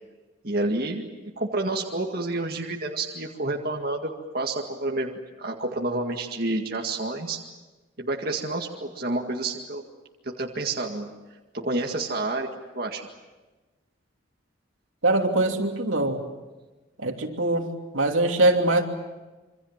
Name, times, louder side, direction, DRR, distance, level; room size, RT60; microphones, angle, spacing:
voice 1, 0.4-1.1 1.4-7.4 8.0-9.8 10.2-11.1 11.5-12.5 12.7-13.0, right 2 dB, 50° right, 1 dB, 2.1 m, -29 dB
voice 2, 15.0-16.2 17.0-18.8, right 2 dB, 80° right, 3 dB, 2.9 m, -23 dB
26.5 x 25.5 x 7.4 m, 1.2 s
head